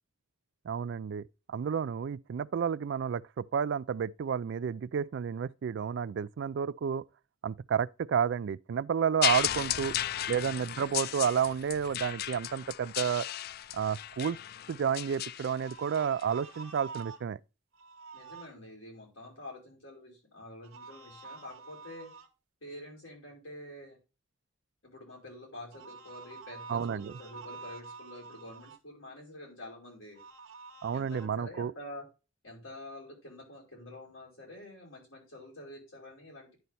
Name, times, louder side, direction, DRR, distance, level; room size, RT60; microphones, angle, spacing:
voice 1, 0.7-7.0 7.4-9.9 10.3-13.3 13.7-14.4 14.7-17.4 26.7-27.1 30.8-31.7, right 7 dB, 60° right, 0.3 m, -31 dB
sound 1, 9.2-16.2 16.9-17.0, left 12 dB, 50° left, 0.3 m, -35 dB
voice 2, 9.7-10.3 18.1-22.1 22.6-24.0 24.8-30.2 30.9-32.1 32.4-36.5, left 1 dB, 75° left, 5.4 m, -47 dB
sound 2, 15.5-17.2 17.7-18.5 20.6-22.3 25.7-28.8 30.2-31.3, right 4 dB, 90° right, 1.1 m, -48 dB
10.5 x 4.4 x 4.1 m
head